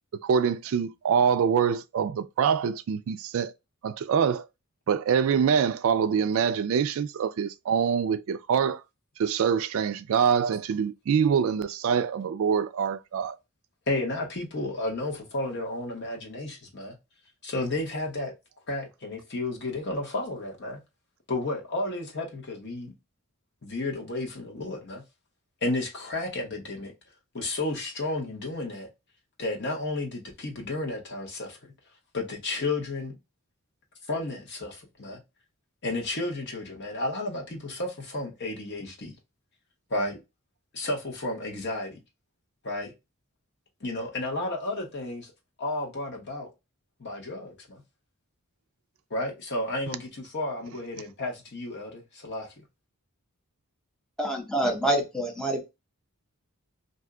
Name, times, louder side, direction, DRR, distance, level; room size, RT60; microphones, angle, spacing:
voice 1, 0.1-3.5 3.8-4.5 4.9-8.8 9.2-13.4, right 7 dB, 65° right, 0.3 m, -25 dB
voice 2, 13.9-16.9 17.4-18.3 18.7-20.8 21.3-22.9 23.6-25.0 25.6-26.9 27.3-28.9 29.4-31.7 32.1-33.2 34.1-35.2 35.8-39.1 39.9-40.2 40.7-42.0 42.6-42.9 43.8-45.3 45.6-46.5 47.0-47.8 49.1-52.6, left 2 dB, 50° left, 1.1 m, -32 dB
voice 3, 54.2-55.6, right 1 dB, 5° left, 0.7 m, -26 dB
2.6 x 2.2 x 3.6 m
head